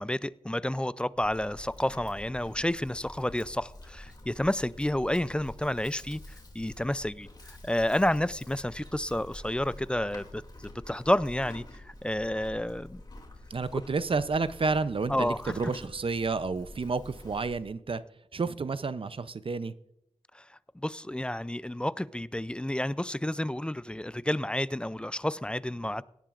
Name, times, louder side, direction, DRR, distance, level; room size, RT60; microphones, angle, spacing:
voice 1, 0.0-6.2 6.5-7.3 7.6-10.4 10.9-11.6 12.0-13.0 15.1-15.5 20.8-26.0, left 1 dB, 10° left, 0.4 m, -30 dB
Livestock farm animals working animals, 1.2-17.7, left 1 dB, 35° left, 2.6 m, -48 dB
voice 2, 13.5-18.0 18.3-19.7, right 4 dB, 50° right, 0.6 m, -30 dB
17.5 x 10.5 x 2.5 m
cardioid pair, 55°, 12 cm